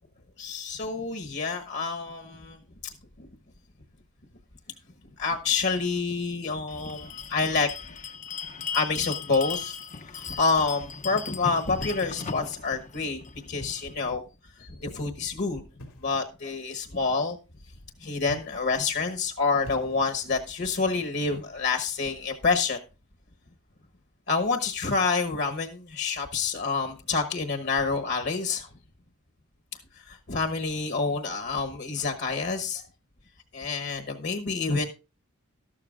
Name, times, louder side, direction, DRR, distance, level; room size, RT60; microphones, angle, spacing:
voice 1, 0.4-2.6 2.8-2.9 3.2-3.3 5.2-7.9 8.7-14.2 14.6-15.6 16.0-17.4 18.0-22.8 24.3-28.7 30.0-32.8 33.5-34.9, left 4 dB, 50° left, 1.2 m, -28 dB
Bell, 6.7-13.9, left 6 dB, 35° left, 0.6 m, -38 dB
sound 1, 11.8-12.6 13.4-14.1 15.8-16.2 18.2-18.9 19.6-20.3, left 1 dB, 90° left, 2.8 m, -44 dB
13.0 x 12.5 x 2.5 m
head